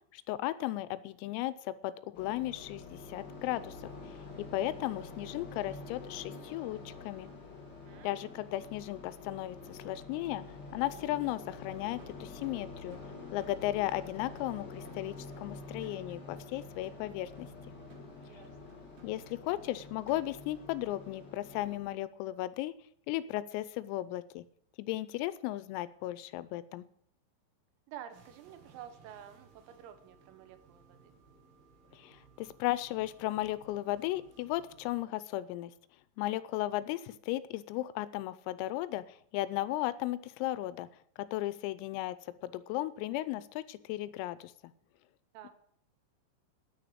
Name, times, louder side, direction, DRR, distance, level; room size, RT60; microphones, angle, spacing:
voice 1, 0.1-3.7 4.5-7.3 8.0-10.4 10.7-13.0 13.3-17.5 19.0-22.7 23.1-24.4 24.8-26.9 31.9-35.7 36.2-40.9 41.3-42.2 42.4-44.7, left 15 dB, 90° left, 16 dB, 3.4 m, -35 dB
sound 1, 2.1-21.8, left 3 dB, 50° left, 1.2 m, -47 dB
voice 2, 7.9-8.2 18.2-18.7 27.9-31.1 45.3-45.5, right 10 dB, 85° right, 9 dB, 3.9 m, -50 dB
sound 2, 12.0-20.6, right 7 dB, 70° right, 4.6 m, -62 dB
sound 3, 28.1-35.1, right 5 dB, 55° right, 3.7 m, -61 dB
9.6 x 9.3 x 8.6 m, 0.64 s
omnidirectional pair, 5.9 m